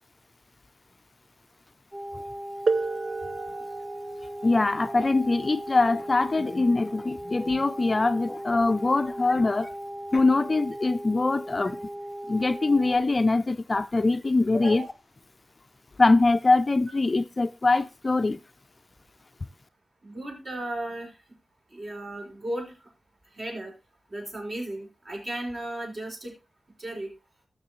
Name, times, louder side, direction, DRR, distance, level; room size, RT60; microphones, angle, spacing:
sound 1, 1.9-13.0, equal, 25° right, 1.6 m, -38 dB
sound 2, 2.7-8.1 9.2-9.3 10.1-10.3, right 4 dB, 70° right, 0.6 m, -34 dB
voice 1, 4.4-9.7 10.1-11.8 12.3-14.8 16.0-18.4, left 3 dB, 30° left, 0.5 m, -23 dB
voice 2, 14.5-14.9 20.0-21.1 21.7-22.7 23.4-23.7 24.1-26.3 26.8-27.1, right 1 dB, 45° right, 5.2 m, -35 dB
20.0 x 6.7 x 3.1 m
wide cardioid pair, 130°, 0 cm